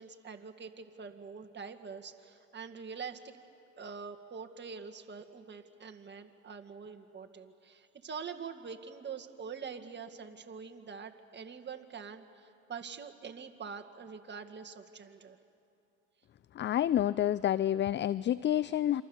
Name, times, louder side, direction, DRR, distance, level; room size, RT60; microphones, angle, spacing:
voice 1, 0.0-3.3 3.8-15.4, right 6 dB, 35° right, 6 dB, 2.0 m, -45 dB
voice 2, 16.5-19.0, left 11 dB, 35° left, 18 dB, 0.5 m, -28 dB
27.0 x 25.0 x 7.2 m, 2.8 s
supercardioid pair, 80°, 33 cm